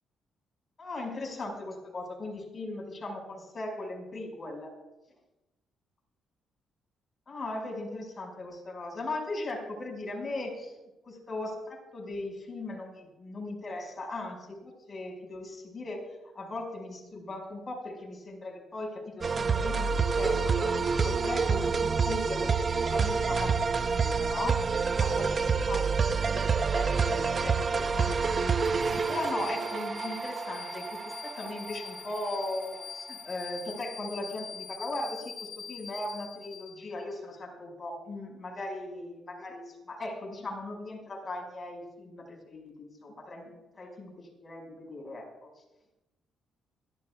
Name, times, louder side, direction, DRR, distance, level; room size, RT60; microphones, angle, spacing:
voice 1, 0.8-4.7 7.3-10.7 11.1-16.1 16.3-28.7 29.1-45.5, left 2 dB, 35° left, 0 dB, 5.6 m, -38 dB
sound 1, 19.2-32.6, right 5 dB, 40° right, 0.8 m, -28 dB
sound 2, 28.6-37.1, left 6 dB, 55° left, 4.2 m, -45 dB
27.0 x 12.5 x 2.4 m, 0.99 s
cardioid pair, 90°, 0 cm